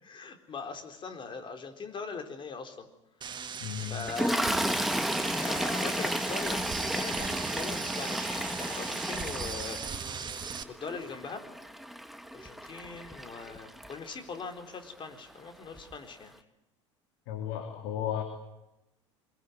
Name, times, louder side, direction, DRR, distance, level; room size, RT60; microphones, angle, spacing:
voice 1, 0.0-2.9 3.8-4.8 5.4-9.8 10.7-11.4 12.3-16.3, left 5 dB, 30° left, 6 dB, 4.2 m, -41 dB
sound 1, 3.2-10.6, right 6 dB, 30° right, 1.8 m, -38 dB
voice 2, 3.6-4.1 17.3-18.2, left 10 dB, 60° left, 4 dB, 3.3 m, -34 dB
Toilet flush, 4.1-14.4 15.3-15.5 15.7-15.9, equal, ahead, 1.5 m, -33 dB
24.0 x 22.0 x 9.5 m, 0.94 s
figure-of-eight pair, 75°, 16 cm